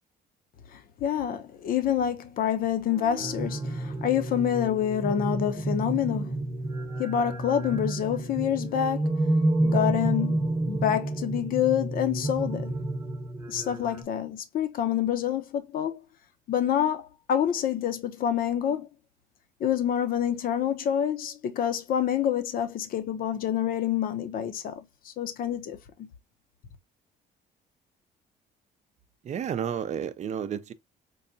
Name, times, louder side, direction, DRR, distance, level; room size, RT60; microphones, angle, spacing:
voice 1, 0.7-6.3 7.0-9.1 9.6-12.7 13.5-16.0 16.5-18.9 19.6-26.1, left 9 dB, 60° left, 0.7 m, -27 dB
sound 1, 2.9-14.0, right 2 dB, 20° right, 1.0 m, -30 dB
voice 2, 29.2-30.7, right 8 dB, 45° right, 0.5 m, -31 dB
4.6 x 2.2 x 2.6 m
cardioid pair, 110°, 17 cm